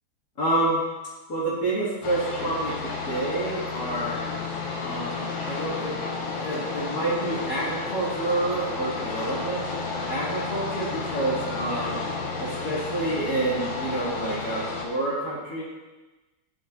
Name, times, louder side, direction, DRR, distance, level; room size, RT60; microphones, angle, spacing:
voice 1, 0.4-0.8 1.3-4.2 4.8-9.6 10.1-12.0 12.4-15.6, right 2 dB, 50° left, -8 dB, 2.4 m, -28 dB
sound 1, 2.0-14.9, left 4 dB, 80° left, 1.8 m, -32 dB
10.5 x 5.2 x 3.6 m, 1.2 s
omnidirectional pair, 2.2 m